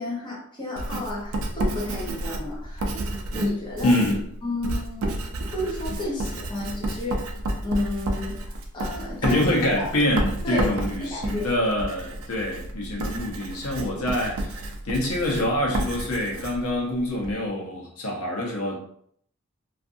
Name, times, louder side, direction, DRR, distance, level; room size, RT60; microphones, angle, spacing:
voice 1, 0.0-4.0 4.4-7.2 7.6-9.4 9.8-9.9 10.4-10.7 11.0-11.5, left 2 dB, 20° left, -5 dB, 0.7 m, -32 dB
Writing, 0.8-17.4, right 1 dB, 75° right, 0.4 m, -31 dB
voice 2, 3.8-4.2 9.2-18.7, left 1 dB, 90° left, -1 dB, 0.7 m, -25 dB
2.6 x 2.5 x 2.5 m, 0.65 s
head